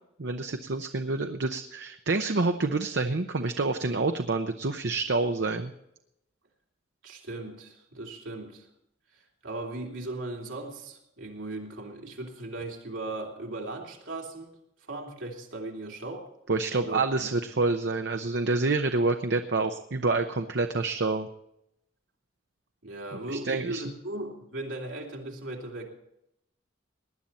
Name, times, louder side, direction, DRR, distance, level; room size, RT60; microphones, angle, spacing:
voice 1, 0.2-5.7 16.5-21.3 23.3-23.8, right 3 dB, 60° right, 7 dB, 0.8 m, -27 dB
voice 2, 7.0-8.6 9.1-14.5 14.9-16.3 16.8-17.3 22.8-25.9, right 2 dB, 85° right, -1 dB, 3.1 m, -38 dB
19.0 x 10.5 x 4.2 m, 0.80 s
head